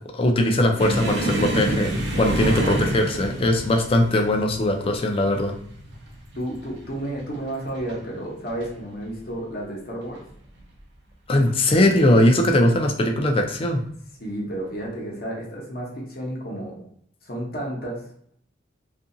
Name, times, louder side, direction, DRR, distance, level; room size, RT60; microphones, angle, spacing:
voice 1, 0.1-5.5 11.3-13.8, left 1 dB, 30° left, 3 dB, 0.4 m, -20 dB
sound 1, 0.8-8.0 8.3-8.7 9.0-9.2 10.0-10.6 11.6-11.7 13.1-13.3, right 1 dB, 65° right, 0.6 m, -28 dB
voice 2, 6.3-10.2 14.2-16.7 17.2-18.0, right 1 dB, 55° left, -3 dB, 0.8 m, -31 dB
2.7 x 2.5 x 2.6 m, 0.64 s
head